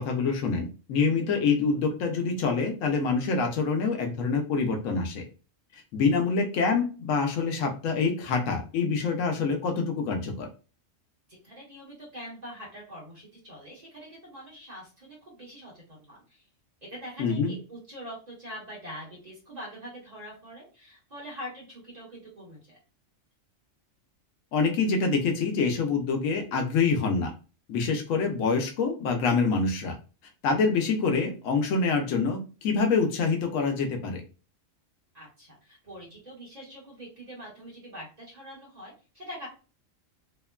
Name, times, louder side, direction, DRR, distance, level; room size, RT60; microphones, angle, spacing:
voice 1, 0.0-5.2 5.9-10.5 17.2-17.5 24.5-27.3 27.7-30.0 30.4-34.2, left 4 dB, 85° left, 4 dB, 1.0 m, -26 dB
voice 2, 11.3-16.4 16.8-22.8 35.1-39.5, equal, 35° right, -4 dB, 1.1 m, -44 dB
2.9 x 2.1 x 2.3 m, 0.34 s
omnidirectional pair, 1.3 m